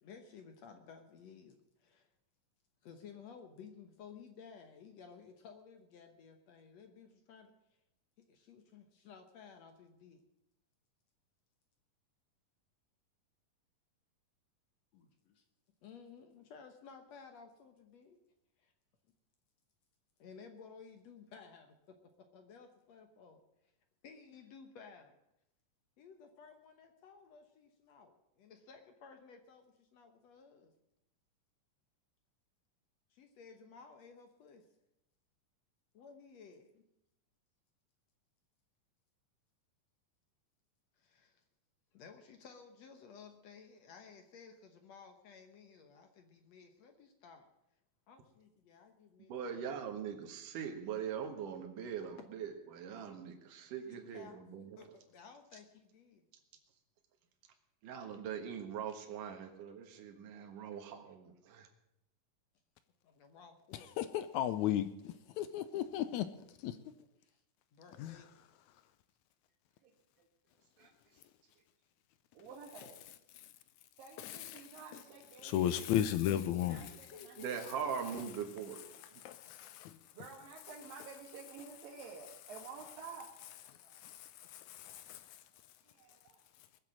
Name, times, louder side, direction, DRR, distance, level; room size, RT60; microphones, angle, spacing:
voice 1, 0.0-2.1 2.8-7.5 8.3-10.2 14.9-15.4 15.8-18.2 18.6-18.7 20.2-23.4 24.0-25.2 26.0-30.7 33.1-34.7 36.0-36.7 41.0-41.4 41.9-47.5 48.1-49.6 53.9-54.4 54.8-56.2 63.0-63.9 67.2-67.4 67.7-68.5 76.7-78.2 84.4-84.7, left 6 dB, 65° left, 2.0 m, -56 dB
voice 2, 49.3-54.7 57.8-61.7 77.4-78.8 79.1-79.2, right 7 dB, 70° right, 3.0 m, -41 dB
voice 3, 63.7-66.3 66.6-66.8 68.0-68.2 73.4-73.5 74.2-74.7 75.4-76.9 78.9-80.0 83.9-85.4, left 11 dB, 80° left, 1.7 m, -36 dB
voice 4, 70.8-71.2 72.3-73.0 74.0-75.8 76.7-77.6 80.1-83.3 83.8-84.0 85.9-86.4, right 5 dB, 85° right, 3.4 m, -51 dB
20.5 x 7.5 x 7.5 m
omnidirectional pair, 3.9 m